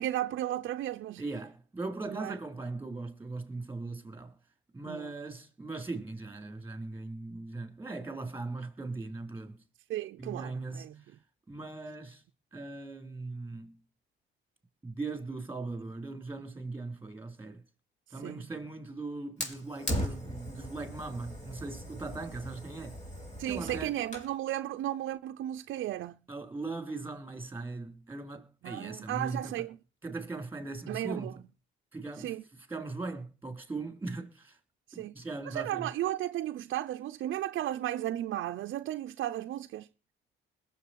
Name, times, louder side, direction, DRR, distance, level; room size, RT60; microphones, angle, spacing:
voice 1, 0.0-1.2 2.1-2.4 4.9-5.1 9.9-11.0 18.2-18.5 23.4-26.2 28.6-29.8 30.9-31.3 32.2-32.4 34.9-35.1 35.4-39.9, right 13 dB, 70° right, 0.6 m, -34 dB
voice 2, 1.2-4.4 4.7-9.6 10.2-10.9 11.5-12.2 12.5-13.7 14.8-17.6 18.1-23.0 23.5-24.0 26.3-29.6 30.0-31.4 31.9-32.4 32.7-34.6 35.1-35.9, right 3 dB, 10° right, 4.2 m, -39 dB
Fire, 19.4-24.4, equal, 35° left, 5.2 m, -38 dB
21.0 x 7.4 x 4.6 m
cardioid pair, 90°, 20 cm